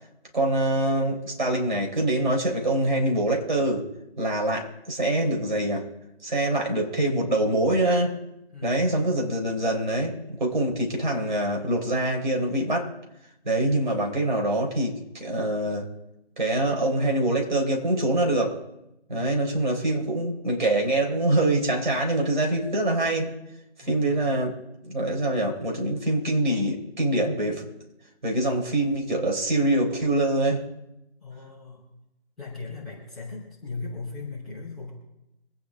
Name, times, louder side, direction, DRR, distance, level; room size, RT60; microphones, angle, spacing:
voice 1, 0.3-3.9 4.2-5.9 6.2-8.2 8.6-12.9 13.4-15.9 16.4-18.7 19.1-23.3 23.8-24.6 24.8-27.7 28.2-30.6, right 1 dB, 45° right, 0 dB, 3.8 m, -24 dB
voice 2, 8.5-9.1 19.1-19.8 23.8-24.2 31.2-31.9 32.4-34.9, left 3 dB, ahead, -14 dB, 3.1 m, -38 dB
26.0 x 9.4 x 3.6 m, 0.88 s
figure-of-eight pair, 165°, 32 cm